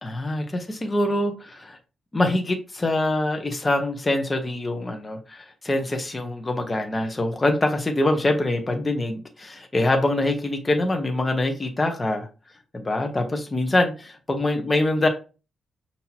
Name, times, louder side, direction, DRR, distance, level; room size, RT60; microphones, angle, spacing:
voice 1, 0.0-1.8 2.1-12.3 12.7-15.1, left 2 dB, 25° left, 4 dB, 0.9 m, -24 dB
5.7 x 2.8 x 2.9 m, 0.32 s
cardioid pair, 95°, 0 cm